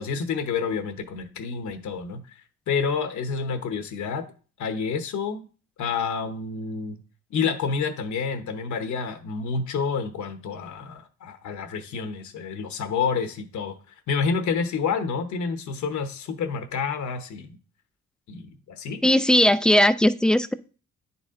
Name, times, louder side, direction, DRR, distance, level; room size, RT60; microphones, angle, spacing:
voice 1, 0.0-2.4 2.7-4.3 4.6-5.4 5.8-7.0 7.3-13.8 14.1-17.5 18.3-19.0, left 5 dB, 70° left, 7 dB, 1.1 m, -29 dB
voice 2, 19.0-20.5, left 1 dB, 5° left, 13 dB, 0.3 m, -18 dB
9.5 x 4.1 x 3.7 m, 0.38 s
cardioid pair, 90°, 30 cm